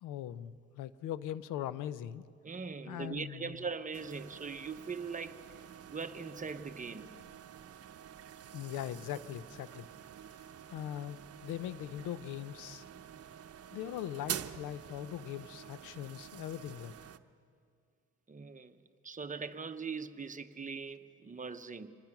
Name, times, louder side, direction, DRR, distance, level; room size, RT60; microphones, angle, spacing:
voice 1, 0.0-2.2 2.9-3.6 8.5-9.9 10.7-12.8 13.7-16.9, left 11 dB, 90° left, 0.7 m, -41 dB
voice 2, 2.4-5.4 5.9-7.1 18.3-18.8 19.0-21.9, right 5 dB, 25° right, 1.0 m, -41 dB
sound 1, 3.9-17.2, right 9 dB, 50° right, 0.8 m, -47 dB
25.5 x 20.0 x 6.0 m
cardioid pair, 90°, 30 cm